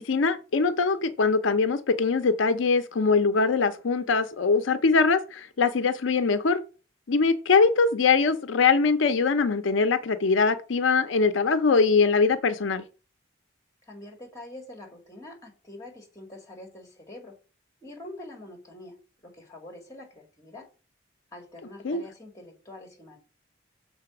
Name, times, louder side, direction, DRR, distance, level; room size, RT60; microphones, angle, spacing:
voice 1, 0.0-6.6 7.1-12.8 21.8-22.0, left 4 dB, 80° left, 0.5 m, -22 dB
voice 2, 13.8-17.4 17.8-19.0 19.2-20.7 21.3-23.2, left 1 dB, 20° left, 2.0 m, -45 dB
6.8 x 4.0 x 5.9 m
head